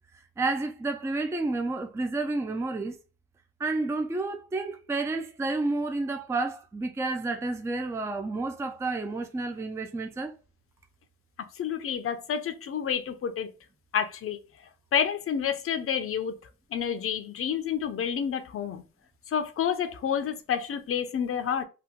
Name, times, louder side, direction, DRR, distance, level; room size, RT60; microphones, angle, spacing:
voice 1, 0.1-3.0 3.6-10.3, right 3 dB, 10° right, 0.4 m, -30 dB
voice 2, 11.6-13.5 13.9-14.4 14.9-16.3 16.7-18.8 19.3-21.6, left 8 dB, 45° left, 0.6 m, -29 dB
2.9 x 2.2 x 3.5 m
cardioid pair, 90°, 30 cm